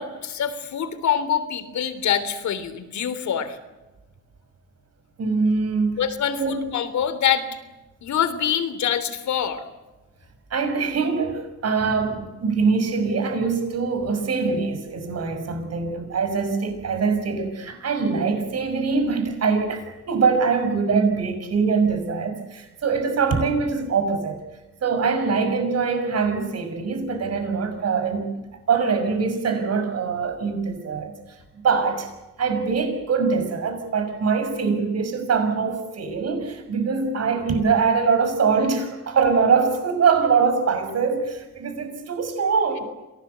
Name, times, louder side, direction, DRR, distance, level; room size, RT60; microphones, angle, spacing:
voice 1, 0.0-3.6 6.0-7.5 8.0-9.6, left 8 dB, 70° left, 3.4 m, -25 dB
voice 2, 5.2-6.0 6.4-6.7 10.5-24.4 24.8-28.4 28.7-31.1 31.6-32.1 32.4-42.8, right 5 dB, 55° right, 6.3 m, -23 dB
27.0 x 18.5 x 8.2 m
cardioid pair, 90°, 30 cm